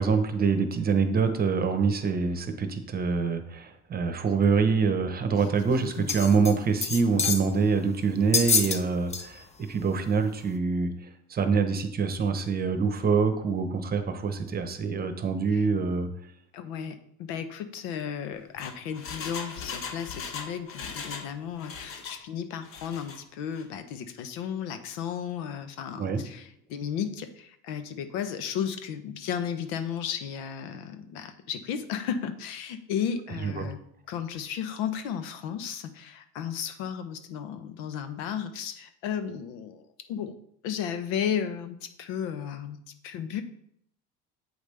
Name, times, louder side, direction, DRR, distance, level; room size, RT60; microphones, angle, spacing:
voice 1, 0.0-9.4 9.7-10.9 11.3-16.1 26.0-26.2 33.4-33.7, right 5 dB, 30° right, 8 dB, 0.9 m, -25 dB
sound 1, 6.1-6.5 6.8-7.5 8.3-8.8 9.1-9.3 9.8-9.9, left 4 dB, 20° left, 0.6 m, -26 dB
voice 2, 16.5-33.8 34.1-40.4 40.6-42.8 43.0-43.4, left 8 dB, 80° left, 10 dB, 0.8 m, -34 dB
Engine, 18.3-21.3 21.6-22.2 22.6-23.2 23.5-23.6, left 5 dB, 45° left, 1.0 m, -39 dB
8.0 x 4.9 x 3.3 m, 0.70 s
supercardioid pair, 100°, 30 cm